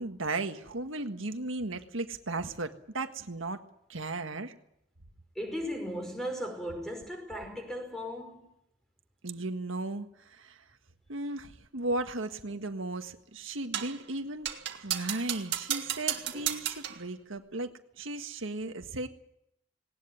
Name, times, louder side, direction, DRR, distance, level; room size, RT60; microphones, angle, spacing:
voice 1, 0.0-3.6 3.9-4.5 9.2-10.6 11.1-17.7 18.0-19.1, right 2 dB, 85° right, 1.6 m, -36 dB
voice 2, 5.4-8.5 16.3-16.5, equal, ahead, 5.3 m, -37 dB
sound 1, 13.7-14.0 14.5-17.0, right 10 dB, 55° right, 2.5 m, -34 dB
19.0 x 19.0 x 9.8 m
head